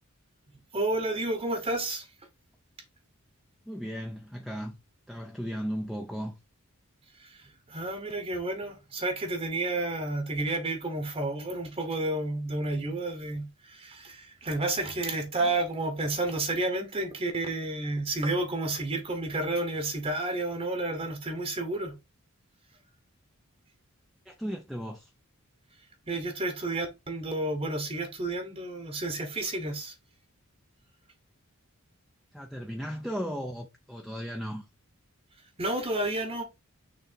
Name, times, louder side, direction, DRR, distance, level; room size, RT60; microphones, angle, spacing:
voice 1, 0.7-2.1 7.2-22.0 26.1-29.9 35.6-36.4, right 2 dB, 25° right, 1.1 m, -31 dB
voice 2, 3.7-4.8 5.1-6.3 24.2-25.1 32.3-34.7, equal, ahead, 0.6 m, -36 dB
6.4 x 3.3 x 4.4 m
head